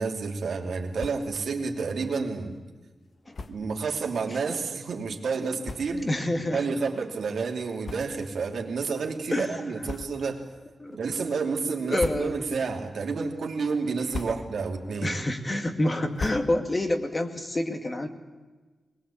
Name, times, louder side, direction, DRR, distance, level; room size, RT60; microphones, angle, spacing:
voice 1, 0.0-2.6 3.5-6.1 6.5-10.5 10.9-15.2, right 4 dB, 80° right, 2 dB, 3.0 m, -30 dB
sound 1, 0.9-1.4 1.8-1.9 2.2-2.3 3.3-3.7 4.5-4.6 5.3-5.4 5.6-6.2 6.7-6.8 7.8-8.5 8.8-9.0 9.8-10.4 10.8-11.3 11.8-12.6 13.0-13.5 13.9-14.7 15.1-16.9, left 3 dB, 50° left, 1.1 m, -39 dB
voice 2, 6.0-6.6 9.3-9.6 10.8-11.0 11.9-12.3 14.3-14.4 15.0-18.1, left 1 dB, 25° left, 6 dB, 2.3 m, -27 dB
21.5 x 21.5 x 8.6 m, 1.3 s
wide cardioid pair, 110°, 0 cm